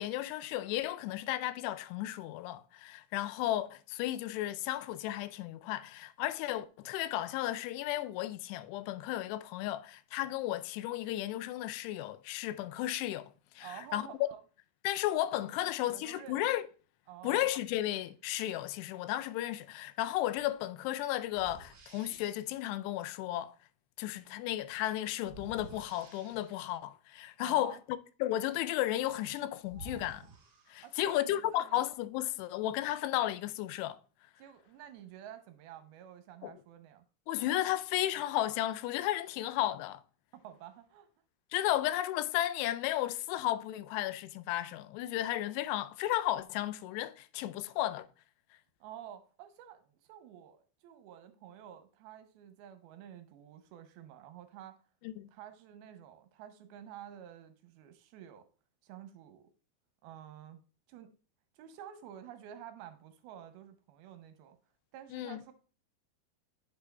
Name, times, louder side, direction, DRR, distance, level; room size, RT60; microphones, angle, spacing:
voice 1, 0.0-14.0 14.8-16.7 17.2-23.5 24.0-27.8 28.2-30.3 30.7-34.0 36.4-36.5 37.3-40.0 41.5-48.1 55.0-55.3 65.1-65.4, left 14 dB, 90° left, 2.7 m, -34 dB
voice 2, 13.6-14.4 15.2-16.4 17.1-17.5 27.4-27.8 30.8-31.8 34.4-37.0 40.3-41.1 41.7-41.8 48.8-54.8 55.3-58.5 58.8-59.5 60.0-60.6 60.9-61.1 61.5-64.6 64.9-65.5, right 10 dB, 80° right, 2.5 m, -50 dB
sound 1, 20.4-20.5 21.3-22.6 25.2-26.8 29.1-29.2 29.6-31.3, right 3 dB, 55° right, 1.2 m, -52 dB
8.3 x 6.8 x 2.2 m
omnidirectional pair, 4.7 m